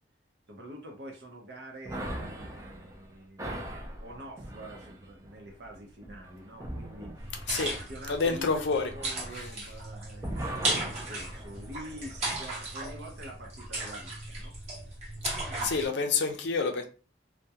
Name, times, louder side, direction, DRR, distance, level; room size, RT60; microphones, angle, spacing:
voice 1, 0.5-3.7 4.0-7.4 7.7-14.9 15.4-15.8, equal, 65° right, 0.6 m, -46 dB
sound 1, 1.9-9.9 10.2-12.5, right 1 dB, 15° right, 0.4 m, -41 dB
sound 2, 7.2-15.9, right 2 dB, 35° right, 0.9 m, -36 dB
voice 2, 8.1-8.9 15.6-16.8, left 4 dB, 70° left, 0.5 m, -28 dB
2.3 x 2.1 x 2.7 m
head